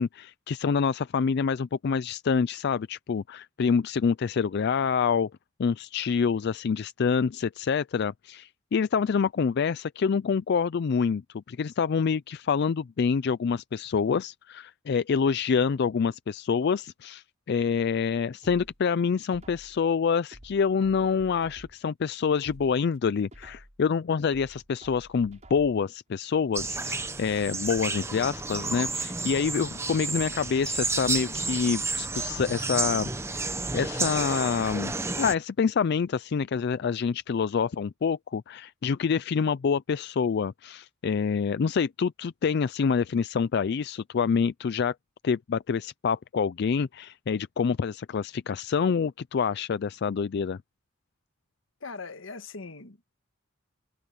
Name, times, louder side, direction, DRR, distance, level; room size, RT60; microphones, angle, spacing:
voice 1, 0.0-5.3 5.6-11.2 11.5-33.4 33.7-44.9 45.2-50.6, left 6 dB, 55° left, 0.4 m, -27 dB
sound 1, 18.4-19.8 20.3-21.9 22.3-23.8 24.3-25.9 26.3-26.4, right 1 dB, 35° right, 5.2 m, -51 dB
sound 2, 26.5-35.3, right 3 dB, 15° right, 1.0 m, -31 dB
voice 2, 51.8-53.2, left 4 dB, 80° left, 1.5 m, -41 dB
head